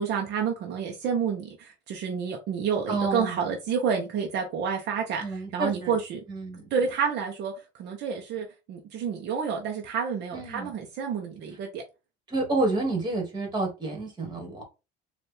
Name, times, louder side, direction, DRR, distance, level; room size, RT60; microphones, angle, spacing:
voice 1, 0.0-6.2 6.7-7.5 7.8-11.8, right 6 dB, 60° right, 0.8 m, -29 dB
voice 2, 2.9-3.4 5.2-6.0 6.3-6.7 10.3-10.7 12.3-14.6, right 2 dB, 20° right, 1.9 m, -29 dB
4.3 x 2.6 x 3.3 m
cardioid pair, 120°, 20 cm